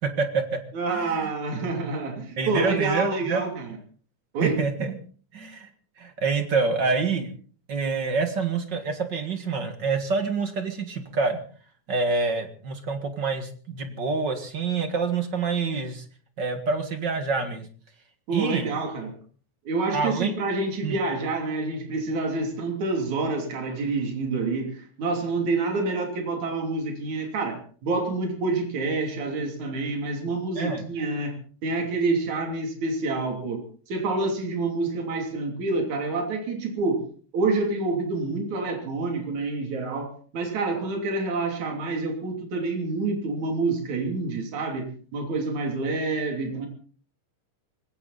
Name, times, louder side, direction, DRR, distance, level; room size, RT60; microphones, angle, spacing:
voice 1, 0.0-0.6 0.9-1.3 2.4-3.4 4.4-4.9 5.3-5.7 6.0-7.3 7.7-11.4 11.9-16.0 16.4-17.7 18.3-18.8 19.9-20.3 20.8-21.0 30.6-30.8, right 4 dB, 40° right, 7 dB, 2.1 m, -27 dB
voice 2, 0.7-3.8 4.3-4.6 18.3-19.1 19.7-31.3 31.6-37.0 37.3-46.7, right 3 dB, 65° right, 3 dB, 4.4 m, -27 dB
20.0 x 17.0 x 4.2 m, 0.41 s
omnidirectional pair, 3.6 m